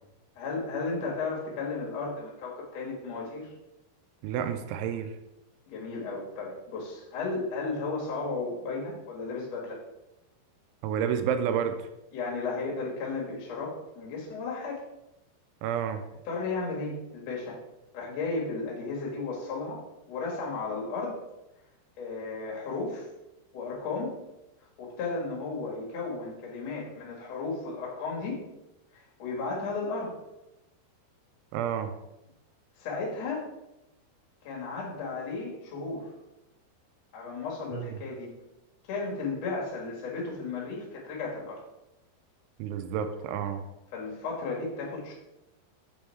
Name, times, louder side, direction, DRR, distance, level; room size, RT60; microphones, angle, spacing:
voice 1, 0.4-3.5 5.7-9.8 12.1-14.8 16.3-17.6 17.9-19.8 20.1-21.2 22.0-23.1 23.5-24.2 24.8-28.4 28.9-30.2 32.8-33.5 34.4-36.1 37.1-38.3 38.9-41.6 43.9-45.1, left 3 dB, 65° left, -3 dB, 1.7 m, -34 dB
voice 2, 4.2-5.1 10.8-11.8 15.6-16.0 31.5-31.9 37.7-37.9 42.6-43.6, right 8 dB, 85° right, 8 dB, 2.9 m, -30 dB
6.9 x 3.4 x 4.4 m, 0.93 s
omnidirectional pair, 5.5 m